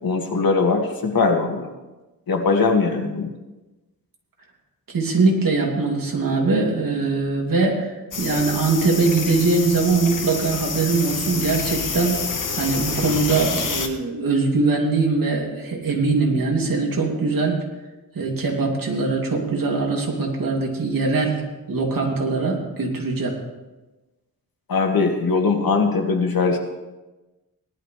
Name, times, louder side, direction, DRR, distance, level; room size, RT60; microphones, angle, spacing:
voice 1, 0.0-1.7 2.3-3.3 24.7-26.6, left 4 dB, 80° left, 2 dB, 2.0 m, -20 dB
voice 2, 4.9-12.2 12.6-17.6 18.1-21.4 21.7-23.4, right 3 dB, 70° right, -1 dB, 2.8 m, -22 dB
sound 1, 8.1-13.9, left 5 dB, 60° left, 1.4 m, -28 dB
18.0 x 12.0 x 3.3 m, 1.1 s
wide cardioid pair, 85°, 35 cm